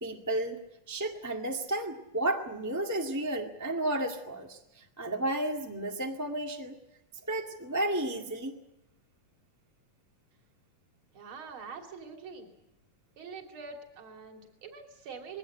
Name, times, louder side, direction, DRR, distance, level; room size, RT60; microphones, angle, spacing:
voice 1, 0.0-0.6 0.9-6.7 7.3-8.5, right 1 dB, 10° right, 1 dB, 1.3 m, -32 dB
voice 2, 11.1-12.5 13.2-15.4, right 5 dB, 40° right, 3 dB, 3.7 m, -44 dB
21.5 x 17.5 x 9.9 m, 0.87 s
omnidirectional pair, 3.6 m